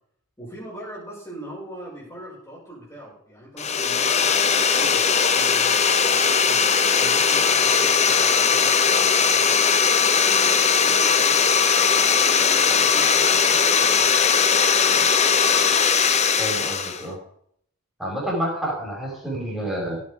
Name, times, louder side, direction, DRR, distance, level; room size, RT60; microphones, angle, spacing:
voice 1, 0.4-9.5 9.9-11.4 11.9-14.1 14.8-15.1, right 1 dB, 15° left, -5 dB, 5.5 m, -40 dB
sound 1, 3.6-17.0, left 6 dB, 30° left, 1.0 m, -19 dB
voice 2, 16.4-17.2 18.0-20.0, right 1 dB, ahead, -4 dB, 5.6 m, -29 dB
16.5 x 9.4 x 5.0 m, 0.66 s
head